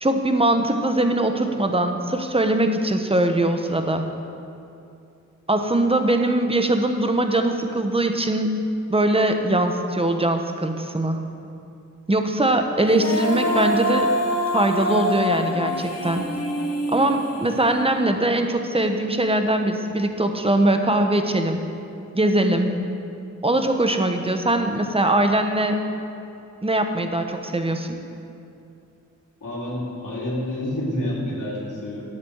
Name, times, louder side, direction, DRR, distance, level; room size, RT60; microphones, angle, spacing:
voice 1, 0.0-4.1 5.5-8.6 8.9-11.2 12.1-14.1 14.5-16.3 16.9-21.6 22.1-22.8 23.4-25.8 26.6-28.0, right 1 dB, 20° right, 5 dB, 1.0 m, -21 dB
Female singing, 12.9-18.1, equal, 55° left, 1.7 m, -25 dB
voice 2, 29.4-32.0, left 1 dB, 90° left, -5 dB, 3.1 m, -28 dB
9.5 x 8.4 x 8.0 m, 2.6 s
wide cardioid pair, 75°, 30 cm